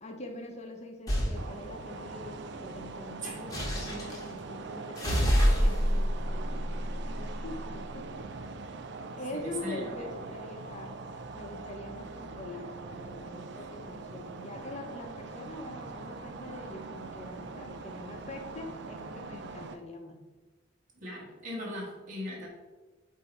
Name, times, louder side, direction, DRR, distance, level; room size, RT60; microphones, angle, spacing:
voice 1, 0.0-8.3 9.2-11.0 11.3-20.2, left 2 dB, 35° left, 3 dB, 0.8 m, -44 dB
sound 1, 1.1-1.4 3.5-4.2 5.0-7.6, equal, 20° left, 1.3 m, -27 dB
sound 2, 1.3-19.8, right 3 dB, 60° right, 0.4 m, -42 dB
voice 2, 9.3-9.9 13.6-13.7 21.0-22.5, equal, 40° right, -4 dB, 1.4 m, -38 dB
8.2 x 2.8 x 4.4 m, 1.3 s
head